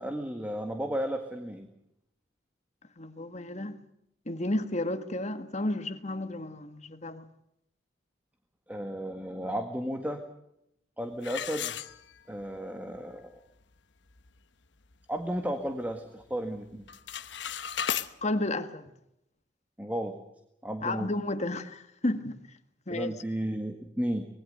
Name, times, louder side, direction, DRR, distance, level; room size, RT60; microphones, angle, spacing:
voice 1, 0.0-1.7 8.7-10.2 11.0-11.8 12.3-13.3 15.1-16.8 19.8-20.2 20.6-21.1 22.9-24.3, equal, 10° right, 1.7 m, -33 dB
voice 2, 3.0-3.7 4.3-7.3 18.2-18.8 20.8-22.4 22.9-23.1, left 1 dB, 40° left, 1.7 m, -32 dB
sound 1, 11.2-12.5 12.9-13.0 13.6-13.7 14.1-14.4 14.8-15.9 16.2-16.6 16.8-18.1, left 9 dB, 70° left, 1.1 m, -35 dB
25.0 x 20.5 x 6.7 m
head